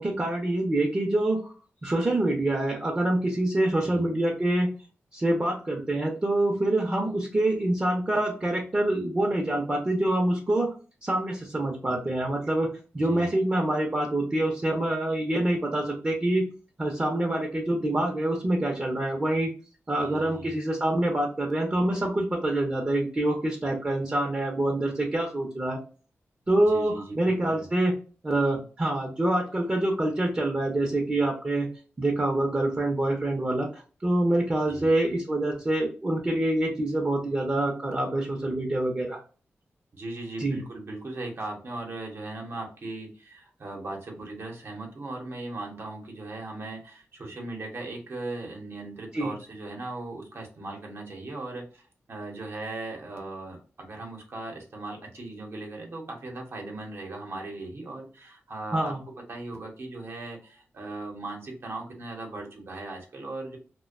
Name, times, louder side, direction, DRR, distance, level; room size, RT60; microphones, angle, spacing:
voice 1, 0.0-1.5 1.8-4.7 5.1-10.7 11.0-16.5 16.8-19.5 19.9-25.8 26.5-27.9 28.2-31.7 32.0-39.2 40.4-40.6 49.1-49.3 58.7-59.0, right 1 dB, 30° right, 1 dB, 0.6 m, -26 dB
voice 2, 12.9-13.3 20.0-20.5 26.7-27.7 34.7-34.9 39.9-58.9 59.3-63.6, right 2 dB, 60° right, 1 dB, 0.8 m, -38 dB
2.4 x 2.1 x 2.4 m, 0.37 s
cardioid pair, 65°, 5 cm